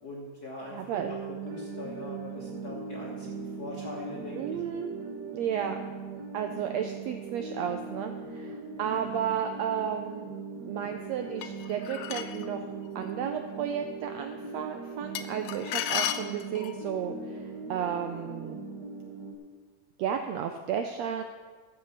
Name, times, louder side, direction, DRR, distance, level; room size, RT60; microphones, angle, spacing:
voice 1, 0.0-4.6 8.9-9.2, left 2 dB, 50° left, -4 dB, 1.1 m, -42 dB
voice 2, 0.7-1.1 4.4-4.9 5.3-5.8 6.3-10.3 10.7-12.7 12.9-18.6 20.0-21.2, right 8 dB, 80° right, 6 dB, 1.5 m, -33 dB
sound 1, 0.9-19.4, right 4 dB, 55° right, 1.2 m, -40 dB
sound 2, 11.4-12.5 15.1-16.8, left 11 dB, 85° left, 2.2 m, -33 dB
13.5 x 5.4 x 7.1 m, 1.5 s
omnidirectional pair, 3.6 m